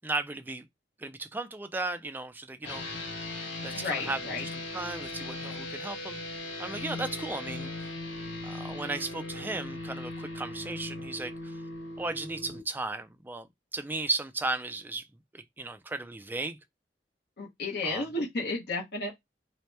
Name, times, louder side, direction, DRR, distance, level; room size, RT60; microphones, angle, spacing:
voice 1, 0.0-0.7 1.0-2.8 3.6-4.2 4.5-6.2 6.6-7.9 8.4-11.6 12.0-13.5 13.7-15.1 15.3-16.6 17.9-18.0, right 2 dB, 10° right, 0.3 m, -35 dB
sound 1, 2.6-12.6, left 2 dB, 85° left, 1.2 m, -38 dB
voice 2, 3.7-4.5 17.4-19.1, left 2 dB, 65° left, 0.9 m, -33 dB
2.8 x 2.1 x 3.2 m
head